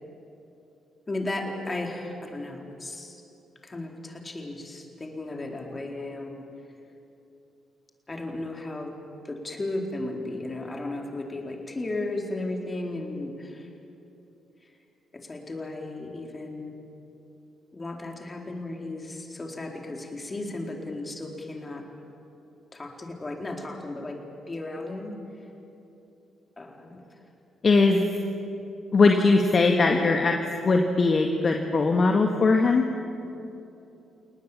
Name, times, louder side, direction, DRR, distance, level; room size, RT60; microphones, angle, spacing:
voice 1, 1.1-3.2 3.6-6.5 8.1-8.9 9.2-13.7 15.1-16.7 17.7-21.8 22.7-25.5 26.6-27.2 27.9-28.1, left 2 dB, 30° left, 1 dB, 4.2 m, -35 dB
voice 2, 27.6-28.0 28.9-30.4 30.6-32.9, left 3 dB, 45° left, 3 dB, 1.8 m, -20 dB
30.0 x 19.0 x 7.4 m, 2.9 s
hypercardioid pair, 45°, 0 cm